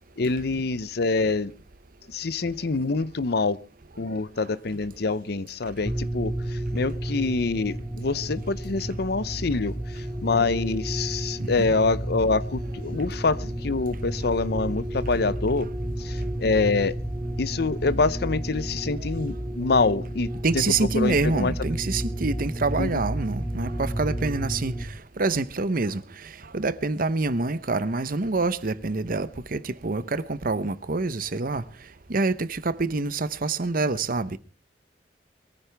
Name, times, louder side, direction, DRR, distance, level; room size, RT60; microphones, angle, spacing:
voice 1, 0.2-1.5 2.1-3.6 4.0-15.7 16.0-16.9 17.4-21.5 22.8-23.0, left 3 dB, 65° left, 0.7 m, -26 dB
sound 1, 5.8-24.8, right 1 dB, 15° right, 2.5 m, -31 dB
voice 2, 11.4-11.7 20.4-24.7 25.2-26.0 26.5-31.6 32.1-34.4, right 3 dB, 55° right, 0.9 m, -26 dB
22.0 x 14.5 x 3.5 m
head